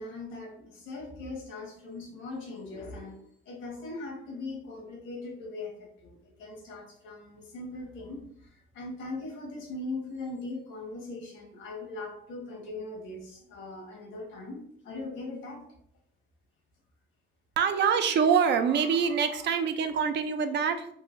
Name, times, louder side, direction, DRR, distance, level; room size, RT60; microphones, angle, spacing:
voice 1, 0.0-15.6, left 2 dB, 85° left, 1 dB, 1.0 m, -40 dB
voice 2, 17.6-20.9, right 6 dB, 60° right, 9 dB, 0.4 m, -25 dB
3.0 x 2.7 x 2.5 m, 0.67 s
cardioid pair, 90°, 20 cm